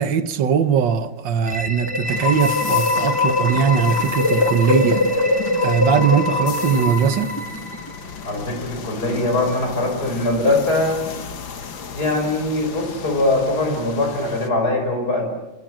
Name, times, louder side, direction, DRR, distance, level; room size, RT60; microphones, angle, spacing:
voice 1, 0.0-5.0 5.6-7.3, right 7 dB, 65° right, 1.7 m, -20 dB
sound 1, 1.4-8.2, left 2 dB, 10° left, 2.6 m, -22 dB
sound 2, 2.0-14.5, left 6 dB, 65° left, 2.3 m, -36 dB
voice 2, 8.2-11.0 11.9-15.2, left 2 dB, 45° left, 5.8 m, -21 dB
28.5 x 21.0 x 7.6 m
omnidirectional pair, 2.3 m